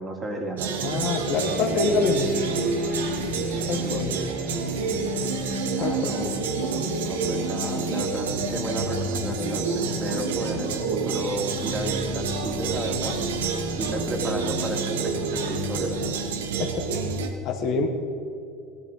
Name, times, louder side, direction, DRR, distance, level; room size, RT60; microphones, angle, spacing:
voice 1, 0.0-1.1 3.2-4.0 5.8-6.4 7.0-13.2 13.8-16.0, right 2 dB, 25° right, 0 dB, 2.9 m, -33 dB
sound 1, 0.6-17.3, right 5 dB, 75° right, 1.2 m, -29 dB
voice 2, 0.8-2.3 3.7-4.1 5.8-6.3 16.6-16.7 17.4-17.9, left 4 dB, 55° left, 3 dB, 1.6 m, -25 dB
sound 2, 1.3-16.1, left 4 dB, 35° left, 1.4 m, -35 dB
17.5 x 11.0 x 4.0 m, 2.7 s
hypercardioid pair, 75°, 0 cm